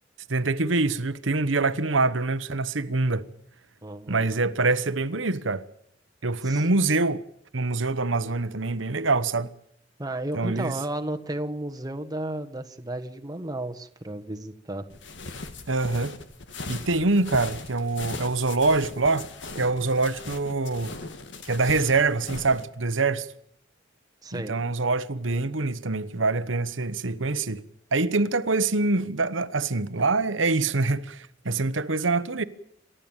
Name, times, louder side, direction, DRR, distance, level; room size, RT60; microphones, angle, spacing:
voice 1, 0.3-3.3 4.1-5.6 6.2-7.2 7.5-9.5 10.3-10.7 15.7-16.2 16.7-19.3 19.6-21.0 21.4-23.3 24.3-27.6 27.9-32.4, right 3 dB, 85° right, 1.2 m, -25 dB
voice 2, 3.8-4.3 6.4-6.7 10.0-14.9 24.2-24.5, right 1 dB, 20° right, 1.4 m, -33 dB
sound 1, 14.9-22.6, left 3 dB, 70° left, 2.1 m, -39 dB
28.5 x 13.0 x 9.0 m
head